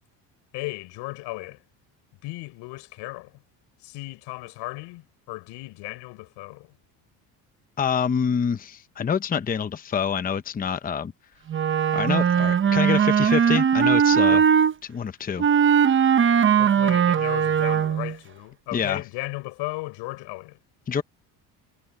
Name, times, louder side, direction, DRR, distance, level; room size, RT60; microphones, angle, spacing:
voice 1, 0.5-1.6 2.2-3.4 3.8-6.7 14.1-14.5 16.6-20.6, left 22 dB, 85° left, 6.0 m, -36 dB
voice 2, 7.8-11.1 11.9-14.4 14.8-15.4 18.7-19.0 20.9-21.0, left 7 dB, 20° left, 0.8 m, -26 dB
Wind instrument woodwind instrument, 11.5-14.7 15.4-18.1, right 8 dB, 30° right, 0.9 m, -19 dB
cardioid pair, 130°, 41 cm